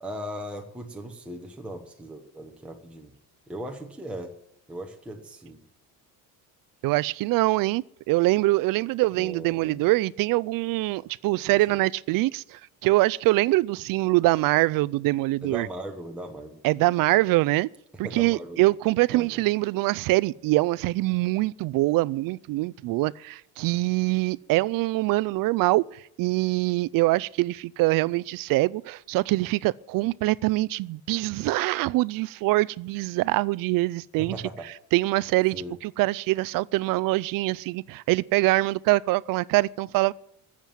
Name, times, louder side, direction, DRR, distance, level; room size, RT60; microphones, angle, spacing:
voice 1, 0.0-3.1 3.5-4.3 4.7-5.6 9.1-9.8 11.5-11.8 15.4-16.6 18.0-18.6 19.1-19.4 34.2-34.7 35.5-35.7, right 1 dB, 5° right, 1.1 m, -38 dB
voice 2, 6.8-15.7 16.6-17.7 18.0-34.4 34.9-40.1, right 20 dB, 55° right, 0.5 m, -24 dB
14.5 x 7.5 x 9.3 m
cardioid pair, 165°, 40 cm